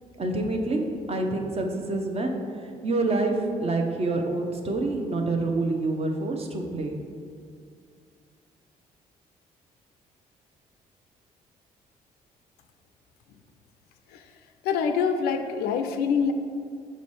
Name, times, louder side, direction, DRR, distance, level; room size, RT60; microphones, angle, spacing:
voice 1, 0.2-0.8 1.1-2.4 2.8-7.0, right 2 dB, 30° right, 3 dB, 0.8 m, -27 dB
voice 2, 14.6-16.3, left 6 dB, 55° left, 7 dB, 0.4 m, -25 dB
5.4 x 4.0 x 4.8 m, 2.3 s
figure-of-eight pair, 45°, 19 cm